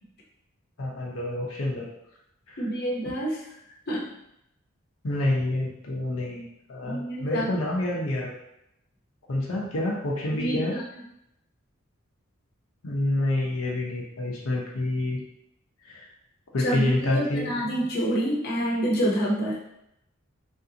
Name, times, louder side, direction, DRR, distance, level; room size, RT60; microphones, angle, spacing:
voice 1, 0.8-1.9 2.5-2.6 5.0-6.4 6.7-8.3 9.3-10.8 12.8-15.2 15.8-16.0 16.5-17.7, left 1 dB, 90° left, -3 dB, 0.7 m, -28 dB
voice 2, 2.6-3.5 3.9-4.1 6.8-7.5 10.3-10.8 16.6-19.6, right 1 dB, 50° left, -5 dB, 0.8 m, -27 dB
3.2 x 2.7 x 2.7 m, 0.81 s
head